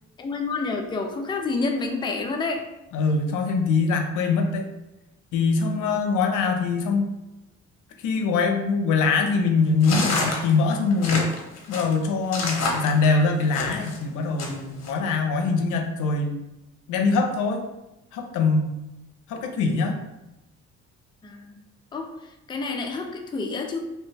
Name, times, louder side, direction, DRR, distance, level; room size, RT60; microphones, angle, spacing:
voice 1, 0.2-2.7 5.8-6.2 21.2-21.6 21.9-23.8, left 3 dB, 15° left, 3 dB, 0.4 m, -29 dB
voice 2, 2.9-4.7 5.3-7.1 8.0-11.3 11.7-16.3 16.9-17.6 18.1-18.7 19.3-20.0, left 4 dB, 85° left, 4 dB, 0.5 m, -23 dB
sound 1, 9.8-14.0 14.4-14.9, left 3 dB, 60° left, 0.8 m, -28 dB
2.8 x 2.2 x 3.2 m, 0.94 s
cardioid pair, 90°, 30 cm